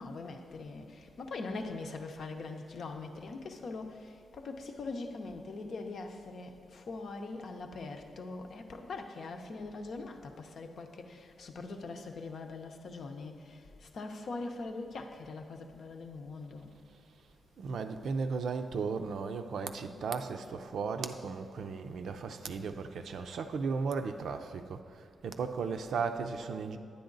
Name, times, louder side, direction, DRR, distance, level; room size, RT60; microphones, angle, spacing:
voice 1, 0.0-16.8, left 3 dB, 55° left, 5 dB, 0.7 m, -42 dB
voice 2, 17.6-24.8 25.2-26.8, right 5 dB, 65° right, 7 dB, 0.5 m, -35 dB
10.0 x 9.6 x 3.9 m, 2.4 s
wide cardioid pair, 165°, 0 cm